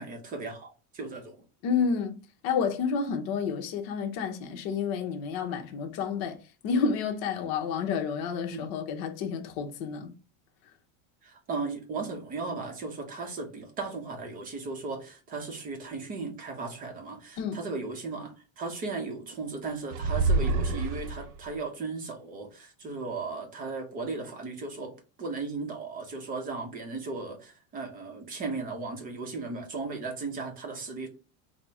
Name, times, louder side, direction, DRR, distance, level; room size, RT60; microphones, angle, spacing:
voice 1, 0.0-1.4 8.5-8.7 11.2-24.9 25.2-31.1, right 3 dB, 20° right, 0.6 m, -36 dB
voice 2, 1.6-2.2 2.4-6.4 6.6-10.1 17.4-17.6, left 6 dB, 50° left, 0.9 m, -30 dB
sound 1, 19.9-21.5, right 3 dB, 60° right, 0.7 m, -27 dB
4.2 x 2.1 x 4.6 m
cardioid pair, 175°, 40 cm